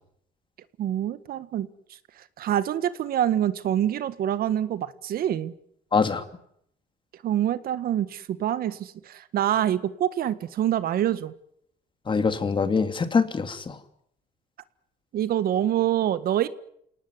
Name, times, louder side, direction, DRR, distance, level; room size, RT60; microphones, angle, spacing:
voice 1, 0.8-1.7 2.4-5.5 7.2-11.3 15.1-16.5, right 11 dB, 65° right, 14 dB, 1.7 m, -26 dB
voice 2, 5.9-6.2 12.1-13.8, left 5 dB, 30° left, 9 dB, 2.8 m, -24 dB
28.0 x 18.5 x 9.7 m, 0.73 s
cardioid pair, 110°, 17 cm